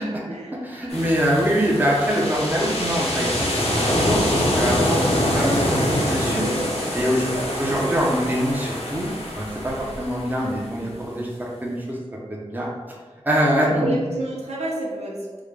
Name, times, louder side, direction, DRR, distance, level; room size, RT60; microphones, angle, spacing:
voice 1, 0.0-0.5 0.8-1.0 6.4-6.7 7.1-8.0 9.8-9.9 13.6-15.4, right 1 dB, 80° right, -3 dB, 0.6 m, -31 dB
voice 2, 0.6-6.4 6.9-7.3 7.6-12.0 12.3-12.7 13.2-14.0, equal, 15° right, -4 dB, 0.7 m, -24 dB
sound 1, 0.9-10.6, left 1 dB, 75° left, 0.7 m, -25 dB
3.6 x 2.2 x 3.2 m, 1.4 s
wide cardioid pair, 75°, 11 cm